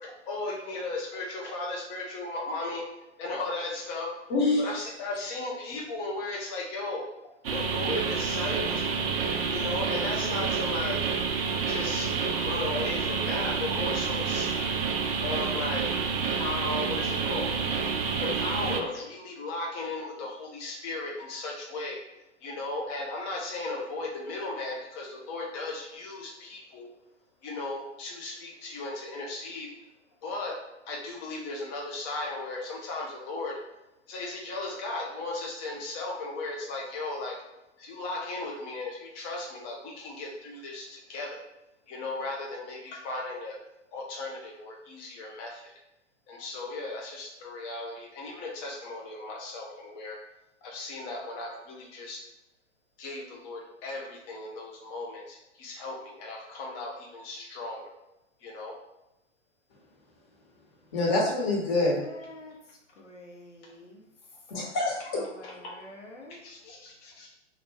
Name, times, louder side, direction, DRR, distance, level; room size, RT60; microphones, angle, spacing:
voice 1, 0.2-2.8 3.2-4.1 4.6-7.0 7.5-9.0 9.5-11.0 11.6-14.7 15.2-15.8 16.3-17.5 17.8-22.0 22.4-26.9 27.4-29.7 30.2-30.6 30.9-33.5 34.1-37.4 37.8-41.4 41.9-43.6 43.9-45.7 46.3-50.2 50.6-52.2 53.0-57.9 58.4-58.7 65.4-65.7 66.3-67.3, left 2 dB, 15° left, 0.4 m, -36 dB
voice 2, 4.3-4.6 60.9-62.0 64.5-65.2, left 2 dB, 40° left, 1.1 m, -25 dB
sound 1, 7.4-18.8, right 5 dB, 55° right, 0.4 m, -29 dB
voice 3, 62.0-64.0 65.1-66.4, left 1 dB, 80° left, 0.8 m, -48 dB
2.4 x 2.2 x 3.3 m
figure-of-eight pair, 105°, 36 cm